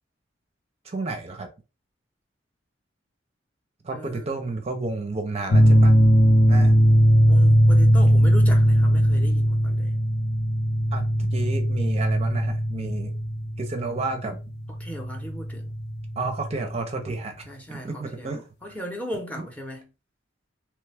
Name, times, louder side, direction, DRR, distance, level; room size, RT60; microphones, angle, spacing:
voice 1, 0.8-1.5 3.8-5.9 6.5-6.8 10.9-13.1 13.6-14.4 16.2-18.4, right 3 dB, 35° right, 0.5 m, -31 dB
voice 2, 3.9-4.3 7.3-10.0 14.8-15.8 17.5-19.9, equal, 10° left, 0.7 m, -37 dB
sound 1, 5.5-16.7, equal, 60° left, 0.7 m, -19 dB
3.0 x 2.2 x 3.3 m
head